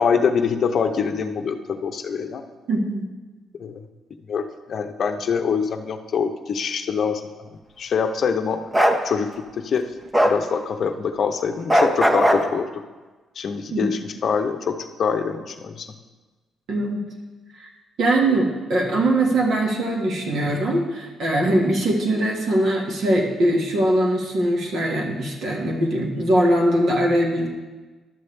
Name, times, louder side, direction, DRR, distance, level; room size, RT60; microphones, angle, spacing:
voice 1, 0.0-2.4 3.6-3.8 4.3-7.5 7.8-8.6 9.0-9.3 9.6-9.8 10.2-12.7 13.4-15.9, left 6 dB, 55° left, 6 dB, 0.7 m, -24 dB
voice 2, 2.7-3.0 13.7-13.9 16.7-17.1 17.5-17.7 18.0-27.5, right 1 dB, 70° right, -1 dB, 1.7 m, -21 dB
Bark, 8.7-9.0 10.1-10.4 11.7-12.5, equal, 15° right, 0.8 m, -17 dB
12.0 x 6.9 x 3.3 m, 1.3 s
cardioid pair, 90°, 0 cm